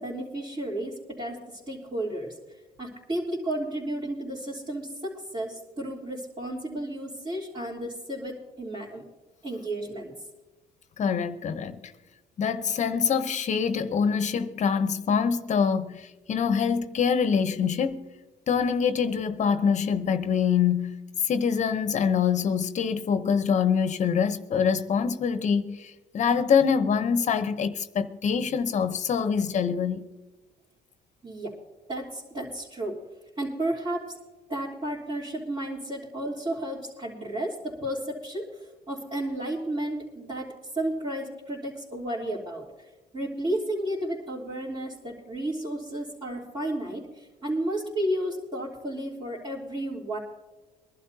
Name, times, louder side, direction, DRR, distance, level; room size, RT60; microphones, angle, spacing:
voice 1, 0.0-2.4 2.8-9.0 9.4-10.1 31.2-31.6 31.9-33.0 33.4-34.2 34.5-42.7 43.1-50.2, right 1 dB, 30° right, 3.6 m, -32 dB
voice 2, 11.0-11.9 12.4-18.0 18.5-21.0 21.2-30.0, left 6 dB, 45° left, 0.9 m, -25 dB
23.5 x 12.0 x 2.8 m
cardioid pair, 110°, 17 cm